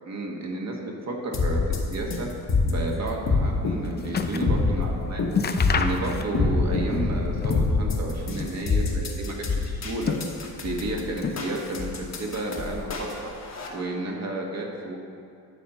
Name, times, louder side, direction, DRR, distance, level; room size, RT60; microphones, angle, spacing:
voice 1, 0.0-2.3 2.6-5.2 5.7-10.2 10.6-13.3 13.7-15.0, right 2 dB, 40° right, 0 dB, 1.5 m, -32 dB
sound 1, 1.3-13.7, left 3 dB, 40° left, 1.3 m, -26 dB
sound 2, 3.4-4.6 4.9-5.0 5.3-6.6 6.9-7.8 8.2-9.1 9.7-10.7 11.2-11.9 12.2-12.9 13.6-13.7, left 5 dB, 25° left, 0.4 m, -31 dB
11.5 x 4.3 x 5.5 m, 2.3 s
cardioid pair, 110°, 41 cm